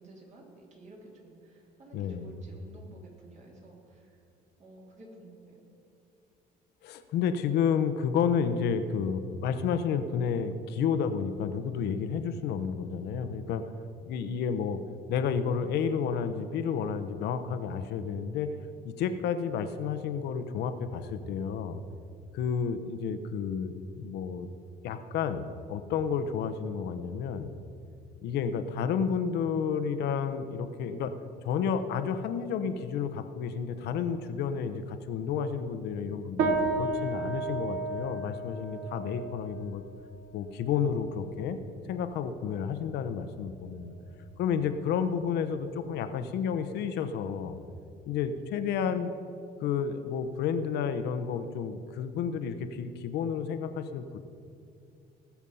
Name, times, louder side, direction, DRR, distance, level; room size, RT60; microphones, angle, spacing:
voice 1, 0.0-4.2 4.6-5.7, right 2 dB, 45° right, -1 dB, 3.3 m, -52 dB
voice 2, 1.9-2.3 6.8-13.6 14.0-14.8 15.1-18.5 18.8-21.8 22.3-24.5 24.8-27.5 28.2-31.1 31.4-39.8 40.3-41.6 41.9-44.0 44.4-47.6 48.1-49.1 49.6-54.2, left 7 dB, 80° left, 9 dB, 0.9 m, -31 dB
sound 1, 36.4-46.0, right 3 dB, 80° right, 1.4 m, -35 dB
19.0 x 7.3 x 5.5 m, 2.6 s
cardioid pair, 110°, 17 cm